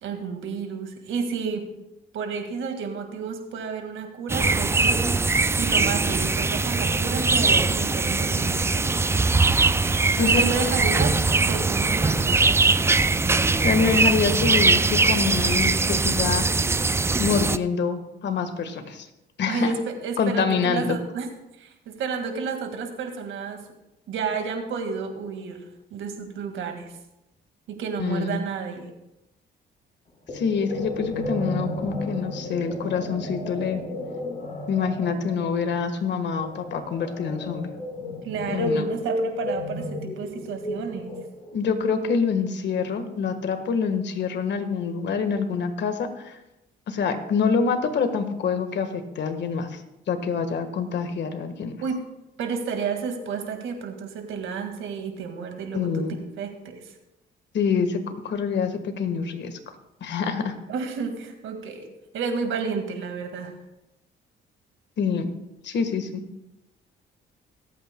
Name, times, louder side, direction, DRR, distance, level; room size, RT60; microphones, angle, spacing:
voice 1, 0.0-1.7 2.1-5.3 5.5-8.9 10.2-12.5 19.5-21.3 21.6-23.6 24.1-26.9 27.7-28.9 38.2-41.2 51.8-52.0 52.4-56.1 56.4-56.9 60.7-61.9 62.1-63.5, right 5 dB, 80° right, 5 dB, 2.0 m, -31 dB
sound 1, 4.3-17.6, right 3 dB, 15° right, 0.3 m, -21 dB
voice 2, 13.6-16.4 17.2-19.1 19.4-19.7 20.2-21.0 28.0-28.4 30.3-33.8 34.7-37.7 38.5-38.8 41.5-46.4 46.9-49.8 50.1-51.8 55.7-56.2 57.5-59.6 60.0-60.5 65.0-65.3 65.6-66.2, left 5 dB, 65° left, 7 dB, 1.5 m, -26 dB
sound 2, 30.3-41.6, left 1 dB, 35° left, 4.3 m, -32 dB
25.0 x 8.7 x 2.3 m, 0.92 s
cardioid pair, 90°, 20 cm